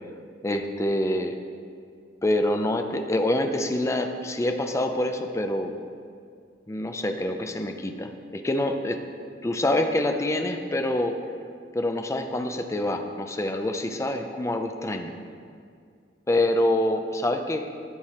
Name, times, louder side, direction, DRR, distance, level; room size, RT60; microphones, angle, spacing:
voice 1, 0.4-1.4 2.2-5.7 6.7-9.0 9.4-11.2 11.7-15.1 16.3-17.7, left 1 dB, 15° left, 5 dB, 0.5 m, -26 dB
12.5 x 4.8 x 4.2 m, 2.3 s
head